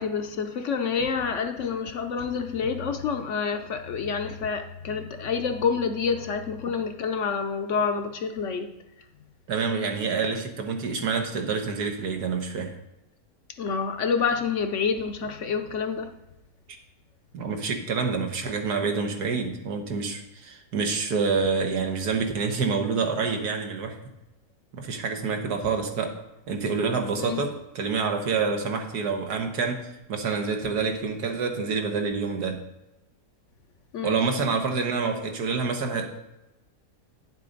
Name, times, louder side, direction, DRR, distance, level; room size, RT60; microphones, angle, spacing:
voice 1, 0.0-8.7 13.6-16.1 27.2-27.4 33.9-34.2, left 5 dB, 60° left, 7 dB, 0.9 m, -28 dB
voice 2, 9.5-12.7 17.3-24.0 24.7-26.1 26.5-32.6 34.0-36.1, right 4 dB, 85° right, 4 dB, 1.7 m, -27 dB
9.6 x 7.5 x 3.9 m, 0.95 s
omnidirectional pair, 1.6 m